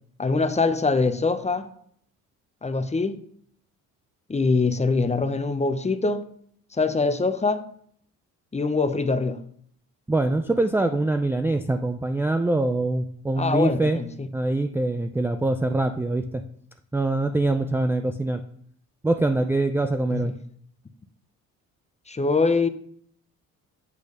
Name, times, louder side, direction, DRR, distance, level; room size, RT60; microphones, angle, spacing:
voice 1, 0.2-1.7 2.6-3.2 4.3-6.2 6.7-7.7 8.5-9.4 13.4-14.3 20.1-20.4 22.1-22.7, left 3 dB, 20° left, 0.8 m, -23 dB
voice 2, 10.1-14.0 14.3-16.4 16.9-18.4 19.0-20.3, right 2 dB, 5° right, 0.4 m, -24 dB
8.4 x 3.3 x 6.5 m
supercardioid pair, 75°, 35 cm